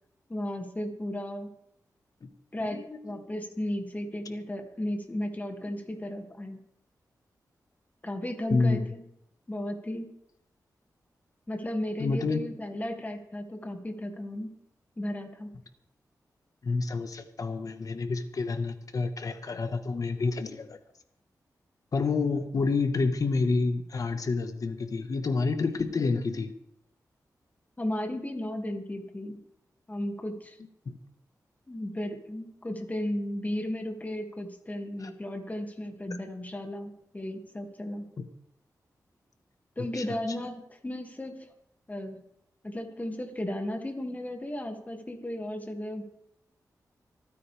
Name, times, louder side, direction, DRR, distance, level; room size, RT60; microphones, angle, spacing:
voice 1, 0.3-1.5 2.5-6.6 8.0-9.0 9.5-10.1 11.5-14.5 15.0-15.5 27.8-29.4 29.9-30.6 31.7-38.1 39.8-41.5 41.9-42.2 42.6-46.0, left 1 dB, 25° left, 4 dB, 2.4 m, -35 dB
voice 2, 2.7-3.2 8.5-8.9 12.0-12.4 16.6-20.8 21.9-26.5 30.8-31.0 35.0-35.1 38.2-38.3 39.9-40.2, left 4 dB, 60° left, 9 dB, 1.4 m, -29 dB
26.5 x 9.6 x 3.5 m, 0.77 s
cardioid pair, 75°, 7 cm